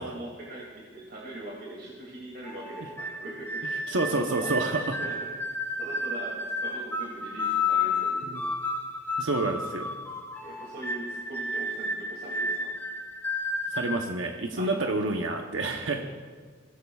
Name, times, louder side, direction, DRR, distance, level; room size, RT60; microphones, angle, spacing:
voice 1, 0.0-4.6 5.0-5.3 5.8-8.4 10.4-12.7 14.5-15.1 15.7-16.0, right 1 dB, 55° right, -4 dB, 2.6 m, -41 dB
sound 1, 2.4-14.1, left 2 dB, 10° left, 1.5 m, -32 dB
voice 2, 3.9-5.0 8.3-8.4 9.2-9.9 13.7-16.0, right 2 dB, 85° right, 3 dB, 0.9 m, -28 dB
23.5 x 17.0 x 2.4 m, 1.5 s
head